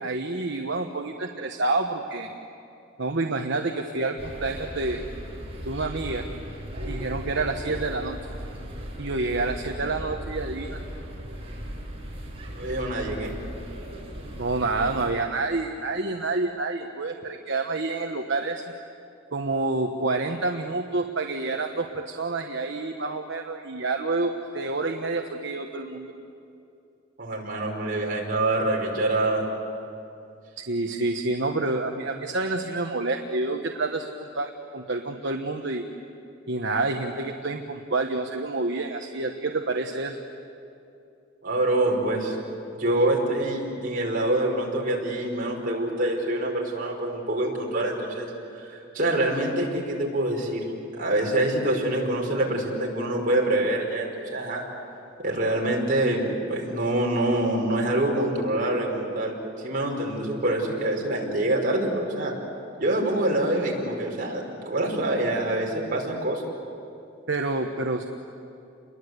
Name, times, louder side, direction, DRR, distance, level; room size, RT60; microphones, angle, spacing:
voice 1, 0.0-2.3 3.0-5.0 5.6-6.3 6.9-8.2 9.0-10.8 14.4-18.7 19.3-26.1 30.6-35.8 36.5-40.2 67.3-68.1, right 3 dB, 65° right, 3 dB, 1.3 m, -28 dB
sound 1, 4.2-15.1, equal, 30° right, 6.2 m, -37 dB
voice 2, 12.5-13.4 27.2-29.5 41.4-42.4 42.8-48.3 48.6-50.6 50.9-54.6 55.2-59.4 59.6-62.3 62.8-66.4, right 1 dB, 45° right, -1 dB, 5.3 m, -25 dB
29.5 x 22.0 x 8.2 m, 2.6 s
head